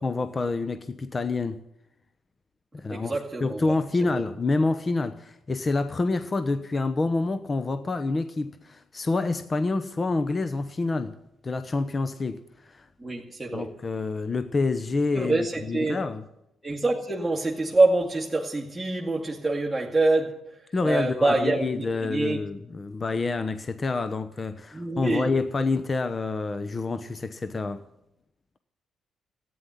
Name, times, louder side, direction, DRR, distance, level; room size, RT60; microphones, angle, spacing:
voice 1, 0.0-1.6 2.7-11.2 11.4-12.9 13.5-16.2 20.7-27.8, left 3 dB, 30° left, 0.9 m, -27 dB
voice 2, 2.9-3.7 4.1-4.2 13.0-13.7 15.1-16.0 16.6-20.4 20.8-22.4 24.7-25.3, right 2 dB, 10° right, 2.2 m, -25 dB
14.5 x 9.5 x 10.0 m
cardioid pair, 90°, 0 cm